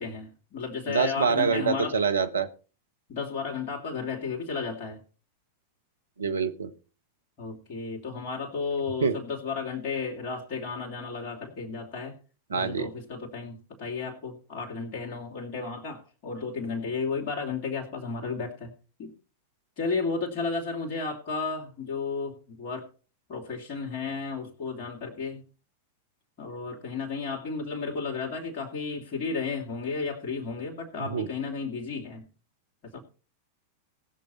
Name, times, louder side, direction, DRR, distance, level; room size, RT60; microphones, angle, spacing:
voice 1, 0.0-2.0 3.1-5.0 7.4-12.1 12.5-18.7 19.0-19.1 19.8-22.9 23.3-25.4 26.4-32.3 32.9-33.0, left 4 dB, 45° left, -2 dB, 3.0 m, -33 dB
voice 2, 0.9-2.5 6.2-6.7 9.0-9.2 12.5-12.9 31.1-31.3, right 5 dB, 70° right, 9 dB, 1.2 m, -25 dB
19.0 x 7.0 x 4.2 m, 0.36 s
figure-of-eight pair, 90°, 0 cm